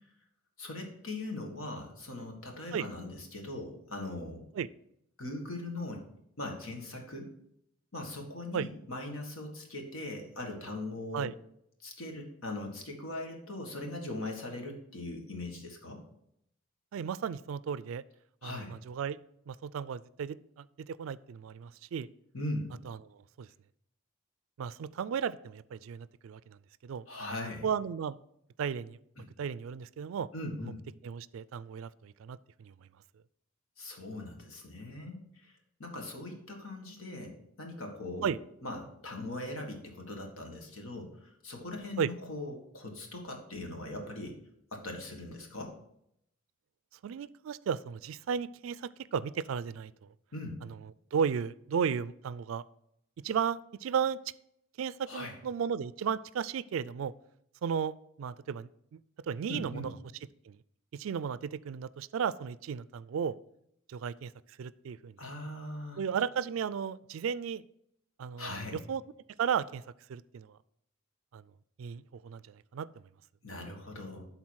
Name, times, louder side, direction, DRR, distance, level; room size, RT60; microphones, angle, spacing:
voice 1, 0.6-4.4 5.2-6.0 6.4-7.3 7.9-11.3 11.8-16.0 18.4-18.8 22.3-22.7 27.1-27.7 29.2-29.3 30.3-30.8 33.8-35.5 35.8-38.4 38.6-44.4 44.7-45.8 50.3-50.6 55.1-55.4 59.5-59.9 65.2-66.0 68.4-68.8 73.4-74.3, left 2 dB, 85° left, 2 dB, 1.7 m, -40 dB
voice 2, 16.9-18.0 18.4-19.2 19.5-22.1 22.9-23.0 23.4-23.5 24.6-27.0 27.6-28.2 28.6-30.3 30.6-30.7 31.0-32.7 38.2-38.4 42.0-42.1 47.0-49.9 51.1-52.6 53.2-54.2 54.8-57.1 57.6-58.7 59.3-59.9 60.5-60.6 60.9-63.4 63.9-64.3 64.6-65.2 66.0-67.6 68.2-68.5 68.9-69.0 69.4-69.8 70.1-70.6 71.3-71.4 71.8-72.4 72.7-72.9, right 7 dB, 75° right, 18 dB, 0.3 m, -34 dB
11.5 x 4.0 x 4.7 m, 0.75 s
head